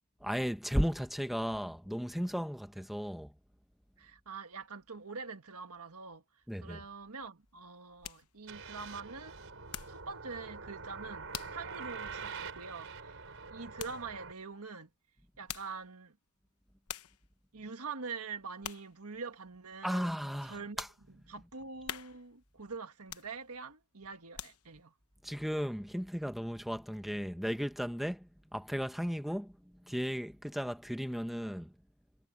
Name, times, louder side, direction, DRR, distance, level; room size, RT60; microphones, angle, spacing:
voice 1, 0.2-3.3 6.5-6.8 19.8-20.9 25.2-31.7, equal, ahead, 1.1 m, -35 dB
voice 2, 4.0-6.2 6.6-9.4 9.9-13.2 13.5-14.9 15.4-16.2 17.5-20.2 20.4-20.8 21.3-24.9, right 4 dB, 90° right, 1.7 m, -44 dB
sound 1, 7.4-10.1 10.5-10.8 11.3-11.7 12.1-12.2 13.8-14.1 15.2-15.9 16.5-16.6 16.9-17.3 17.7-18.1 18.6-19.0 19.5-19.6 20.1-21.0 21.4-21.5 21.8-22.4 23.0-23.7 24.1-24.9 25.3-25.4, left 10 dB, 90° left, 1.0 m, -46 dB
sound 2, 8.5-14.3, right 5 dB, 60° right, 6.1 m, -45 dB
head